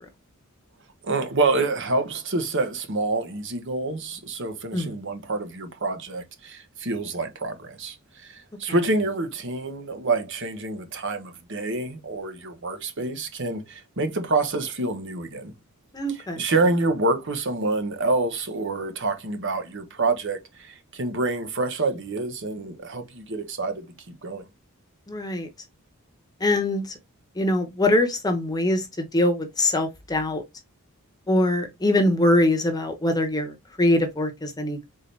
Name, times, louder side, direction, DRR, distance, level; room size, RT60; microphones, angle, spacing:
voice 1, 1.0-15.5 16.1-24.4, right 3 dB, 60° right, 1.0 m, -27 dB
voice 2, 15.9-16.4 25.1-25.5 26.4-27.0 27.3-30.4 31.3-34.8, left 1 dB, 20° left, 0.9 m, -23 dB
4.0 x 3.8 x 3.2 m
head